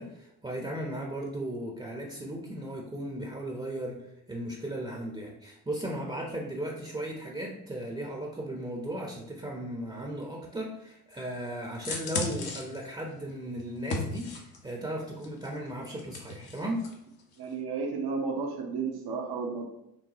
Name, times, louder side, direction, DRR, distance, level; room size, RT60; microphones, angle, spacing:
voice 1, 0.0-14.3 14.6-16.9, right 1 dB, 10° right, -1 dB, 0.9 m, -36 dB
sound 1, 11.7-14.7 15.2-16.9 17.2-17.3, left 3 dB, 55° left, 1.1 m, -36 dB
voice 2, 17.4-19.7, right 4 dB, 55° right, 1 dB, 1.0 m, -32 dB
5.9 x 2.2 x 2.9 m, 0.82 s
hypercardioid pair, 55°, 44 cm